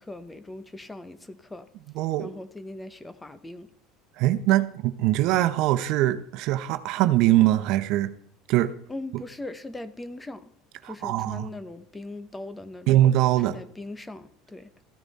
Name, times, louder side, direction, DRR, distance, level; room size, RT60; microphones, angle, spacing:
voice 1, 0.0-1.7 2.2-3.7 8.9-10.5 10.8-13.0 13.4-14.7, left 2 dB, 10° left, 1.0 m, -40 dB
voice 2, 1.9-2.3 4.2-8.1 8.5-8.7 9.1-9.2 10.8-11.5 12.9-13.5, right 14 dB, 60° right, 1.0 m, -22 dB
15.0 x 9.8 x 4.2 m
supercardioid pair, 120°, 0 cm